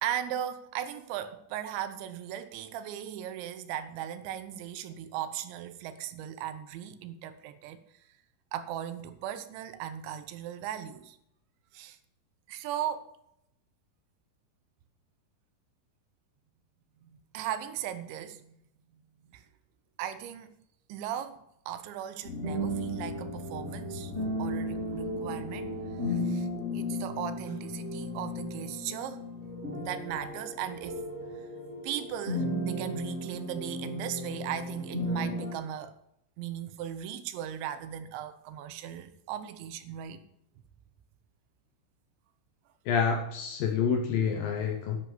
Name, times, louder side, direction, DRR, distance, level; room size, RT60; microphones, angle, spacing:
voice 1, 0.0-7.8 8.5-11.2 11.7-12.0 12.5-13.1 17.0-18.6 19.3-19.4 20.0-20.6 20.9-24.1 24.4-25.7 26.1-26.5 26.7-29.2 29.8-31.0 31.4-31.5 31.8-35.9 36.4-40.2, right 10 dB, 85° right, 3.2 m, -37 dB
sound 1, 22.2-35.5, left 1 dB, 20° right, 2.0 m, -35 dB
voice 2, 42.9-45.0, left 6 dB, 70° left, 2.3 m, -28 dB
11.0 x 6.9 x 7.9 m
omnidirectional pair, 5.2 m